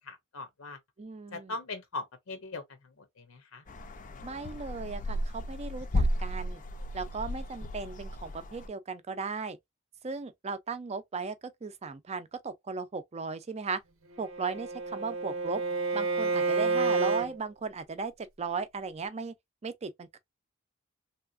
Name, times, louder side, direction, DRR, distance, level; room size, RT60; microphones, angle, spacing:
voice 1, 0.1-0.8 1.3-2.6 3.2-3.6, left 3 dB, 85° left, 0.7 m, -40 dB
voice 2, 1.0-1.6 4.2-6.6 6.9-9.6 10.0-11.4 11.6-13.8 14.2-15.6 15.9-19.3 19.6-20.2, right 4 dB, 30° right, 0.5 m, -36 dB
sound 1, 3.7-8.7, equal, 40° left, 0.5 m, -34 dB
Bowed string instrument, 14.1-17.3, right 4 dB, 90° right, 0.9 m, -29 dB
3.4 x 2.8 x 2.4 m
head